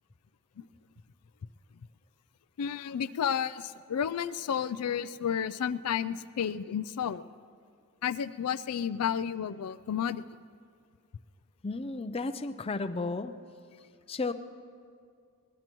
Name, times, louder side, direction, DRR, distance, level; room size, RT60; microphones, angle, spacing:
voice 1, 2.6-7.2 8.0-10.2, left 8 dB, 90° left, 13 dB, 0.4 m, -31 dB
voice 2, 11.6-13.3 14.1-14.3, left 3 dB, 25° left, 10 dB, 0.5 m, -33 dB
23.0 x 19.5 x 3.0 m, 2.2 s
head